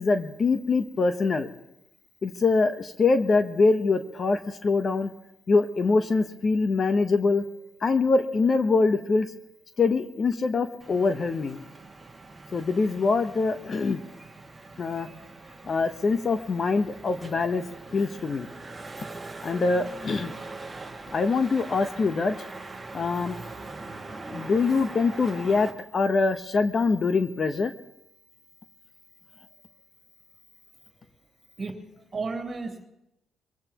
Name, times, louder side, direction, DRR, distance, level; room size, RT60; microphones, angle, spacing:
voice 1, 0.0-1.5 2.2-5.1 5.5-7.4 7.8-9.3 9.8-11.6 12.5-14.0 14.8-15.1 15.6-17.7 17.9-18.5 19.4-20.3 21.1-22.3 22.9-23.4 24.3-27.7, left 4 dB, 40° left, 9 dB, 1.0 m, -24 dB
sound 1, 10.8-25.7, right 3 dB, 15° right, 2.0 m, -42 dB
voice 2, 31.6-32.8, right 3 dB, 35° right, 1 dB, 3.0 m, -34 dB
24.0 x 16.5 x 3.0 m, 0.87 s
cardioid pair, 90°, 0 cm